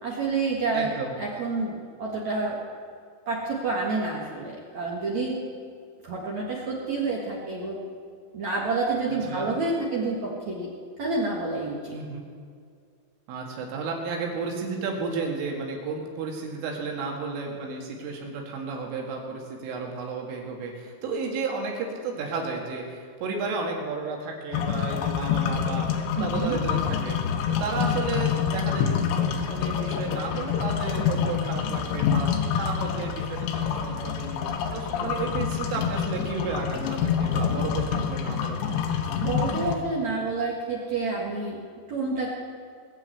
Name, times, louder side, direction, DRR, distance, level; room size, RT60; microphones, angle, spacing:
voice 1, 0.0-2.6 3.3-5.4 6.0-7.8 8.3-10.7 11.0-12.0 26.2-26.6 39.2-41.6 41.9-42.3, right 3 dB, 60° right, -3 dB, 2.0 m, -28 dB
voice 2, 0.7-1.2 9.1-9.5 11.9-12.2 13.3-27.2 27.5-38.6, right 4 dB, 80° right, 0 dB, 4.6 m, -33 dB
sound 1, 24.5-39.8, left 7 dB, 75° left, 3.1 m, -27 dB
20.5 x 7.3 x 8.4 m, 2.2 s
omnidirectional pair, 5.7 m